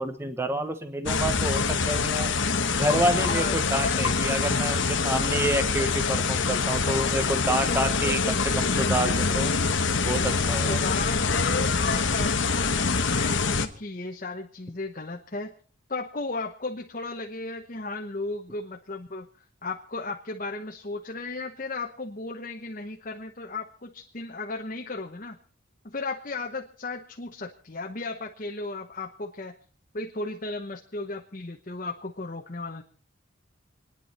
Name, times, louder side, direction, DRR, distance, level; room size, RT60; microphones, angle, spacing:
voice 1, 0.0-2.3 2.8-8.2 8.6-9.5 10.1-10.8, right 1 dB, 10° right, 8 dB, 1.1 m, -28 dB
sound 1, 1.1-13.7, left 4 dB, 70° left, 1.2 m, -25 dB
voice 2, 3.2-4.0 7.5-9.5 10.5-15.5 15.9-19.3 19.6-25.4 25.8-29.5 29.9-32.8, left 3 dB, 40° left, 1 dB, 1.1 m, -35 dB
28.0 x 10.0 x 4.3 m, 0.41 s
head